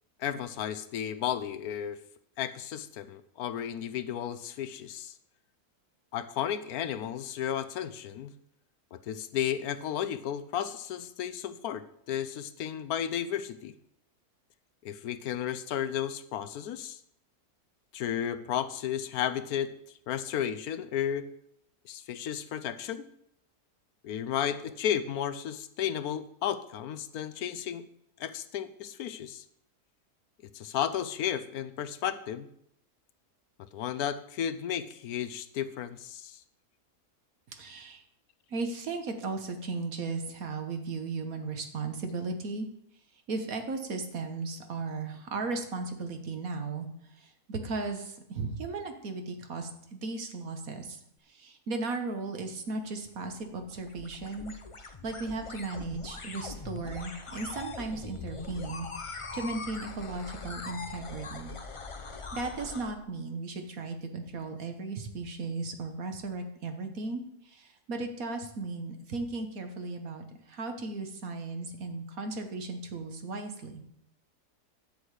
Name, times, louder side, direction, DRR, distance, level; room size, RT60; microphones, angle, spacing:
voice 1, 0.2-2.0 2.4-5.1 6.1-8.3 8.9-13.7 14.8-17.0 17.9-19.7 20.1-21.3 21.8-23.0 24.0-27.9 28.2-29.4 30.5-32.5 33.7-36.4, left 9 dB, 75° left, 13 dB, 1.1 m, -33 dB
voice 2, 37.5-38.0 38.5-42.7 43.3-46.9 47.2-51.0 51.3-54.5 55.0-61.5 62.3-73.8, right 3 dB, 65° right, 6 dB, 1.6 m, -36 dB
sound 1, 53.1-62.9, left 4 dB, 35° left, 0.5 m, -42 dB
10.5 x 7.7 x 4.9 m, 0.71 s
omnidirectional pair, 1.7 m